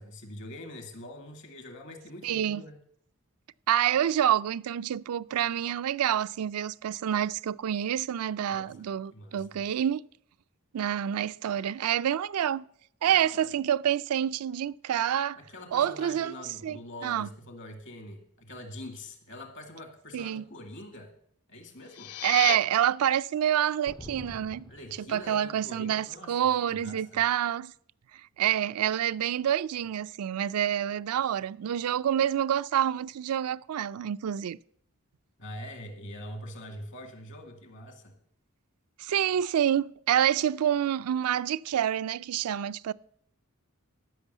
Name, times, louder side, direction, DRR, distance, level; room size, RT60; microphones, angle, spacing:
voice 1, 0.0-2.8 8.5-9.5 13.1-13.4 15.4-21.1 21.5-22.1 24.7-27.2 35.4-38.1, left 1 dB, 60° left, 2.2 m, -44 dB
voice 2, 2.2-2.6 3.7-10.0 10.7-12.6 13.0-15.4 15.7-16.3 16.6-17.3 20.1-20.4 22.2-24.6 25.1-27.7 28.4-34.6 39.0-42.9, right 10 dB, 80° right, 0.4 m, -27 dB
sound 1, 21.7-22.6, left 13 dB, 90° left, 0.4 m, -33 dB
sound 2, 23.9-25.8, left 2 dB, 20° left, 0.4 m, -47 dB
13.5 x 6.1 x 8.1 m
head